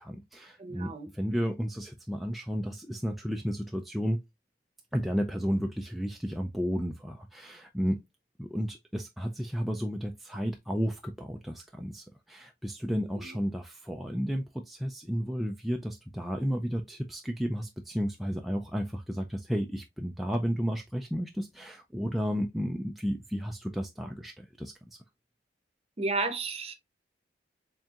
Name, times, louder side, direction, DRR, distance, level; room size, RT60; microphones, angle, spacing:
voice 1, 0.0-4.2 4.9-8.0 8.4-25.0, equal, ahead, 0.3 m, -33 dB
voice 2, 0.6-1.1 12.9-13.4 26.0-26.7, right 3 dB, 35° right, 0.8 m, -33 dB
4.3 x 3.6 x 2.4 m
head